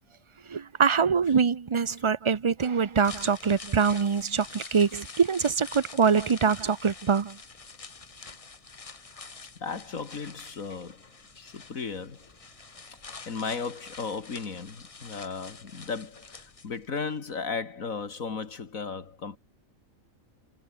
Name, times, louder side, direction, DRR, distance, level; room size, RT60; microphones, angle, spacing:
voice 1, 0.5-7.4, right 6 dB, 40° right, 0.4 m, -24 dB
sound 1, 1.2-1.5 1.9-2.2 2.5-2.6 2.9-3.1 3.3-3.4 7.6-7.7 8.2-8.6 9.0-9.1 9.4-10.3 10.7-10.9, left 1 dB, 60° left, 7.9 m, -60 dB
sound 2, 2.9-17.0 17.3-17.4, left 4 dB, 25° left, 1.1 m, -46 dB
voice 2, 9.6-11.1 11.4-12.3 13.3-19.4, left 5 dB, 80° left, 2.5 m, -35 dB
omnidirectional pair, 1.4 m